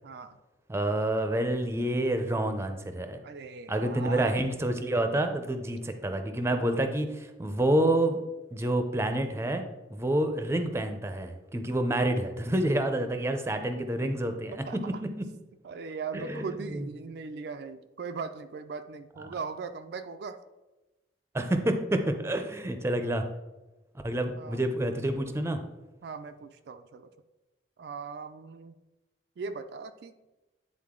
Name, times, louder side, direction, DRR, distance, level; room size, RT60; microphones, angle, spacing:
voice 1, 0.0-0.4 3.2-4.4 14.5-14.9 15.6-20.4 24.3-24.6 26.0-27.1 27.8-28.8 29.4-30.1, right 5 dB, 65° right, 8 dB, 0.4 m, -39 dB
voice 2, 0.7-3.2 3.7-8.2 8.5-9.6 9.9-14.6 15.2-15.3 16.1-16.9 21.3-23.2 24.0-25.6, right 1 dB, 15° right, 7 dB, 0.5 m, -28 dB
9.5 x 3.9 x 3.7 m, 1.1 s
head